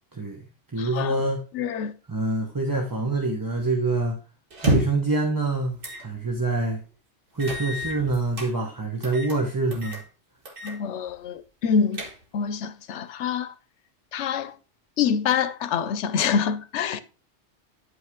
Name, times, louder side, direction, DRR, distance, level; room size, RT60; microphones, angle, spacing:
voice 1, 0.1-0.4 0.7-1.4 2.1-4.2 4.6-6.8 7.3-10.0, right 2 dB, 20° right, 1.0 m, -26 dB
voice 2, 0.8-1.2 1.5-1.9 10.6-12.0 12.3-13.5 14.1-14.6 15.0-17.0, left 7 dB, 85° left, 1.0 m, -26 dB
sound 1, 4.5-5.1 5.8-6.0 6.4-6.5 7.4-8.5 9.0-9.4 9.7-10.0 10.5-10.8 11.1-11.2 11.7-12.5, right 1 dB, 50° right, 1.8 m, -29 dB
9.8 x 5.6 x 3.6 m
omnidirectional pair, 1.2 m